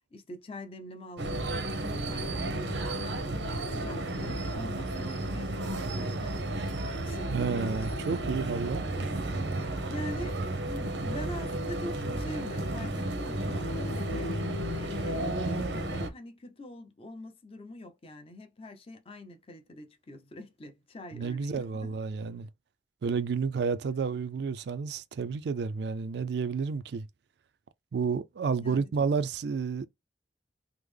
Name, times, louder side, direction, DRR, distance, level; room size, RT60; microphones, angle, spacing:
voice 1, 0.1-5.6 6.0-8.2 9.9-10.4 10.6-14.3 14.7-22.0 28.6-28.9, left 1 dB, 35° left, 0.6 m, -44 dB
sound 1, 1.2-16.1, right 1 dB, 85° right, 0.7 m, -32 dB
voice 2, 7.3-8.9 21.1-22.5 23.0-27.1 27.9-29.9, right 5 dB, 65° right, 0.3 m, -31 dB
3.5 x 2.0 x 3.2 m
head